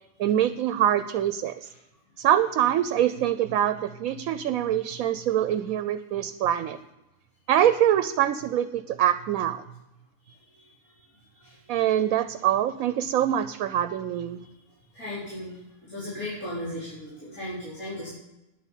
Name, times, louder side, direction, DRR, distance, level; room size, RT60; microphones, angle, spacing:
voice 1, 0.2-1.7 2.2-6.8 7.5-9.6 11.7-14.4, right 11 dB, 80° right, 12 dB, 1.0 m, -24 dB
voice 2, 11.4-11.8 14.9-15.6 15.8-18.1, left 1 dB, 90° left, -10 dB, 4.5 m, -36 dB
10.0 x 8.3 x 7.2 m, 0.94 s
omnidirectional pair, 1.5 m